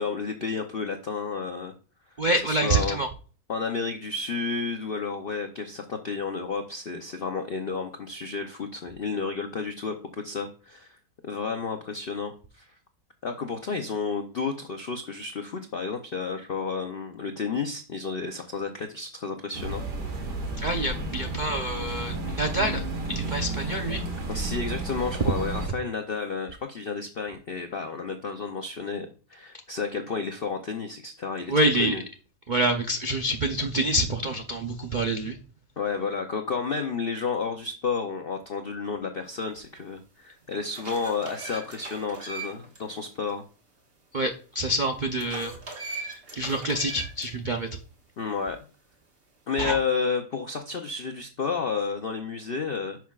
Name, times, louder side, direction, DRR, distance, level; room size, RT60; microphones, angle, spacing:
voice 1, 0.0-1.7 2.5-3.0 3.5-9.9 10.2-11.0 11.2-12.7 13.2-19.8 24.3-32.0 35.8-43.4 48.2-48.6 49.5-53.0, left 5 dB, 80° left, 5 dB, 0.5 m, -31 dB
voice 2, 2.2-3.1 20.6-24.0 31.5-32.0 32.5-35.4 44.1-45.5 45.8-47.7 49.6-49.8, right 1 dB, 85° right, 4 dB, 0.4 m, -27 dB
sound 1, 19.5-25.7, right 2 dB, 70° right, 2.1 m, -32 dB
sound 2, 39.8-39.9 40.4-42.8 43.1-43.2 45.2-47.3, right 3 dB, 35° right, 1.5 m, -39 dB
10.0 x 5.9 x 2.4 m, 0.38 s
omnidirectional pair, 1.9 m